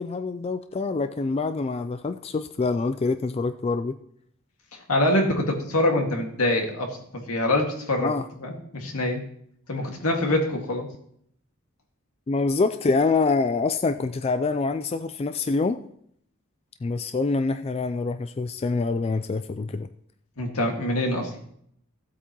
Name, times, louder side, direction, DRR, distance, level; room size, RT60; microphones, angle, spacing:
voice 1, 0.0-4.0 8.0-8.2 12.3-15.8 16.8-19.9, left 3 dB, 25° left, 10 dB, 0.3 m, -25 dB
voice 2, 4.9-8.1 8.4-9.2 9.7-10.9 20.4-21.3, left 1 dB, 85° left, 2 dB, 2.0 m, -25 dB
15.5 x 8.1 x 3.0 m, 0.68 s
head